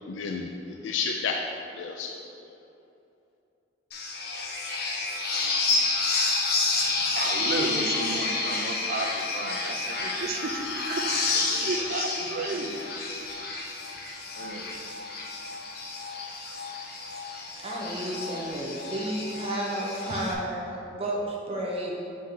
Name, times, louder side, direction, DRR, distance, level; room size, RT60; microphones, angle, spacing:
voice 1, 0.1-2.2, left 5 dB, 90° left, 2 dB, 0.4 m, -31 dB
sound 1, 3.9-20.3, left 3 dB, 55° left, 0.7 m, -30 dB
voice 2, 6.8-12.8 14.3-14.7 17.2-17.4, right 3 dB, 55° right, 3 dB, 0.6 m, -33 dB
voice 3, 17.2-21.9, right 1 dB, 30° right, -4 dB, 1.0 m, -32 dB
5.6 x 5.1 x 3.8 m, 2.7 s
head